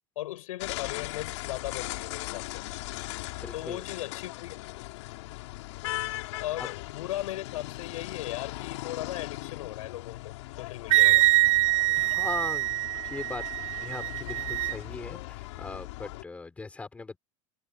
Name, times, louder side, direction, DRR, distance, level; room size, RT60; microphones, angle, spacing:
voice 1, 0.2-2.6 3.5-4.6 6.4-11.3, left 15 dB, 80° left, 7.0 m, -37 dB
sound 1, 0.6-16.2, left 20 dB, 55° left, 4.0 m, -39 dB
voice 2, 3.4-3.8 6.6-6.7 12.0-13.4 13.8-17.2, left 3 dB, 10° left, 3.8 m, -39 dB
Wind instrument woodwind instrument, 10.9-14.8, right 19 dB, 70° right, 0.6 m, -24 dB
supercardioid pair, 180°, 17 cm